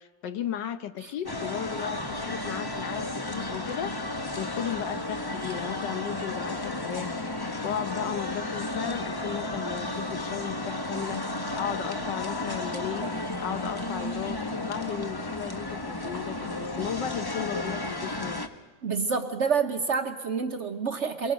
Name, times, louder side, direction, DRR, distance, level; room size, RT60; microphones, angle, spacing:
voice 1, 0.0-11.3 11.6-18.4, left 9 dB, 75° left, 10 dB, 1.5 m, -35 dB
sound 1, 1.3-18.5, left 2 dB, 25° left, 0.5 m, -33 dB
voice 2, 18.8-21.3, right 5 dB, 50° right, 6 dB, 1.0 m, -28 dB
24.5 x 22.5 x 5.1 m, 1.2 s
omnidirectional pair, 2.0 m